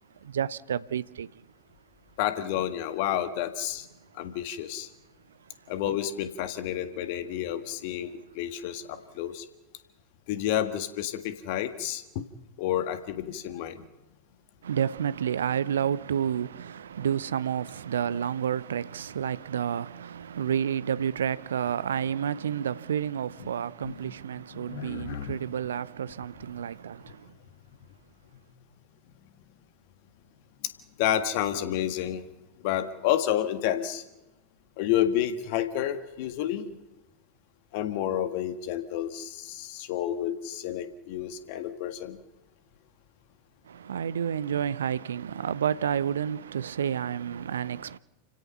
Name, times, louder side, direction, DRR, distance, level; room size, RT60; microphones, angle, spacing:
voice 1, 0.2-1.4 5.8-5.9 14.6-27.3 43.7-48.0, right 8 dB, 65° right, 0.6 m, -30 dB
voice 2, 2.2-3.9 4.1-4.9 5.7-9.4 10.3-12.2 12.6-13.9 23.4-23.5 23.8-24.1 24.5-25.4 31.0-32.2 32.6-34.0 34.8-36.8 37.7-42.2, left 11 dB, 50° left, 1.7 m, -30 dB
29.5 x 16.5 x 5.7 m
figure-of-eight pair, 90°, 0 cm